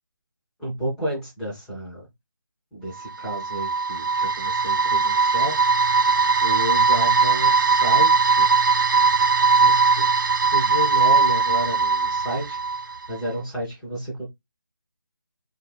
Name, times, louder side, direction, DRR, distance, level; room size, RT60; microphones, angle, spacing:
voice 1, 0.6-2.1 2.7-5.6 6.4-8.5 9.6-10.2 10.5-14.2, right 1 dB, ahead, 0.3 m, -31 dB
sound 1, 3.0-13.1, right 4 dB, 60° right, 0.5 m, -20 dB
2.3 x 2.2 x 3.1 m
figure-of-eight pair, 160°, 12 cm